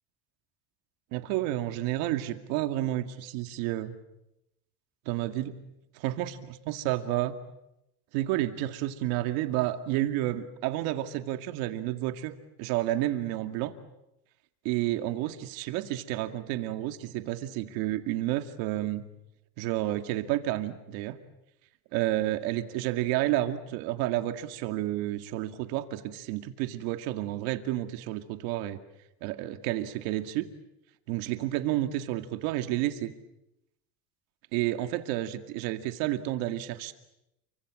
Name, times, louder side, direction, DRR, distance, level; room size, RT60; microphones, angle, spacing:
voice 1, 1.1-4.0 5.1-5.6 6.0-7.4 8.1-13.7 14.6-19.0 19.6-21.1 21.9-28.8 29.2-30.5 31.1-33.1 34.5-36.9, right 14 dB, 90° right, 8 dB, 2.3 m, -30 dB
30.0 x 24.5 x 7.7 m, 0.87 s
cardioid pair, 180°, 35 cm